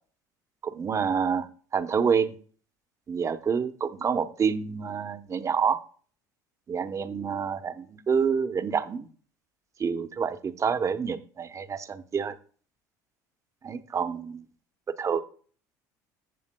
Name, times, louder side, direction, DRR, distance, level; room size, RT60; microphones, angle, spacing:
voice 1, 0.6-1.5 1.7-2.3 3.1-5.8 6.7-9.1 9.8-12.3 13.6-14.4 15.0-15.2, right 6 dB, 35° right, 10 dB, 1.0 m, -27 dB
16.0 x 7.0 x 2.2 m, 0.42 s
hypercardioid pair, 80°, 9 cm